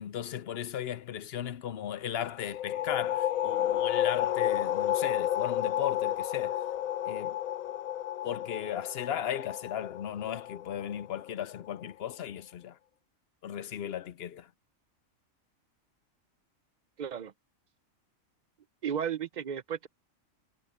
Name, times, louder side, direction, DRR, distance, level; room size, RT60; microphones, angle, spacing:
voice 1, 0.0-6.6 7.1-7.4 8.2-12.8 13.4-14.5, left 10 dB, 60° left, 0.7 m, -36 dB
sound 1, 2.4-11.8, left 11 dB, 80° left, 1.0 m, -31 dB
voice 2, 17.0-17.3 18.8-19.9, right 8 dB, 60° right, 0.4 m, -34 dB
omnidirectional pair, 1.4 m